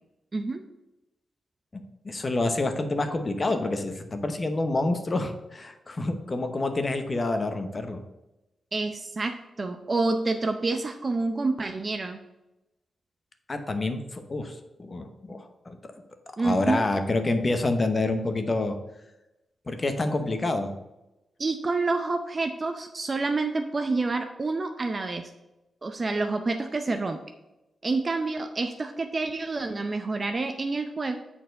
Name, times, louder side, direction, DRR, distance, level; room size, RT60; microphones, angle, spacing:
voice 1, 1.7-8.0 13.5-14.5 14.8-15.8 16.4-18.8 19.7-20.7, left 2 dB, 35° left, 7 dB, 0.9 m, -27 dB
voice 2, 8.7-12.2 16.4-16.8 21.4-25.3 25.8-27.2 27.8-31.2, right 3 dB, 35° right, 6 dB, 0.6 m, -28 dB
6.9 x 4.2 x 6.4 m, 0.95 s
cardioid pair, 100°, 0 cm